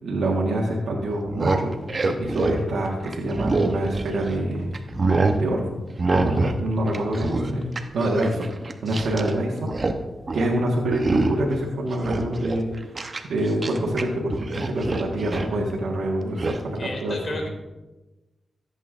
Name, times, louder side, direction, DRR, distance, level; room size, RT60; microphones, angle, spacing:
voice 1, 0.0-1.8 2.0-4.7 5.4-5.7 6.1-8.5 8.8-9.7 10.3-12.7 13.2-17.4, right 1 dB, 80° right, -3 dB, 1.5 m, -26 dB
sound 1, 1.2-4.4 4.7-5.4 6.0-6.6 6.9-9.3 9.6-10.0 10.3-10.5 10.9-11.5 11.9-14.0 14.3-15.6 16.4-16.6, right 3 dB, 45° right, 0.9 m, -25 dB
voice 2, 16.8-17.5, left 1 dB, 55° left, 1 dB, 2.8 m, -31 dB
14.5 x 8.2 x 2.5 m, 1.1 s
cardioid pair, 60°, 0 cm